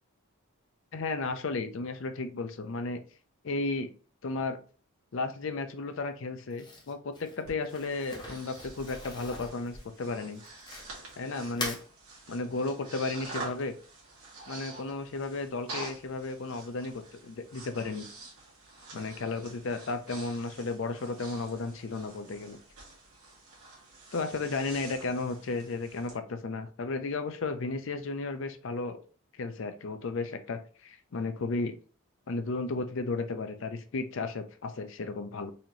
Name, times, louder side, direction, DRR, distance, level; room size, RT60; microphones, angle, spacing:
voice 1, 0.9-3.0 3.4-3.9 4.2-4.6 5.1-10.4 11.2-11.8 12.3-13.7 14.5-16.9 17.2-18.1 18.9-22.6 24.1-29.0 29.4-31.8 32.3-35.5, left 3 dB, 55° left, 9 dB, 0.5 m, -34 dB
Crumpling crinkling, 6.5-11.1 11.5-11.8, left 2 dB, 20° left, 0.8 m, -41 dB
Breathing, 7.5-26.2, right 3 dB, 75° right, 1.6 m, -47 dB
4.2 x 2.9 x 2.7 m, 0.38 s
head